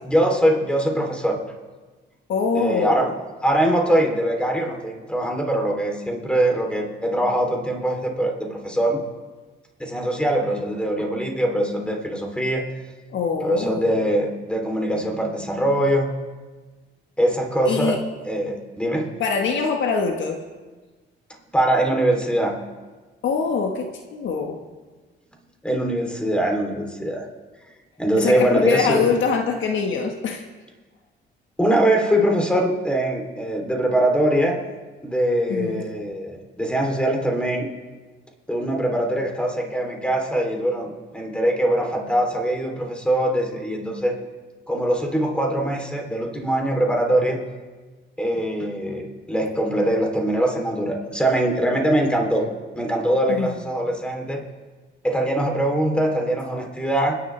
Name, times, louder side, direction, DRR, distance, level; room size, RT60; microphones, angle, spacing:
voice 1, 0.1-1.4 2.5-3.1 3.4-9.0 9.8-12.6 13.4-16.1 17.2-19.1 21.5-22.6 25.6-27.3 28.0-29.2 31.6-34.6 35.0-37.7 38.5-44.1 44.7-47.4 48.2-52.4 52.7-54.4 55.0-57.2, right 1 dB, 5° left, 1 dB, 3.2 m, -22 dB
voice 2, 2.3-3.1 13.1-14.1 17.6-18.0 19.2-20.4 23.2-24.6 28.1-30.4 35.5-35.9 53.3-53.5, left 5 dB, 70° left, 3 dB, 1.5 m, -24 dB
29.0 x 11.0 x 3.4 m, 1.3 s
cardioid pair, 90°, 20 cm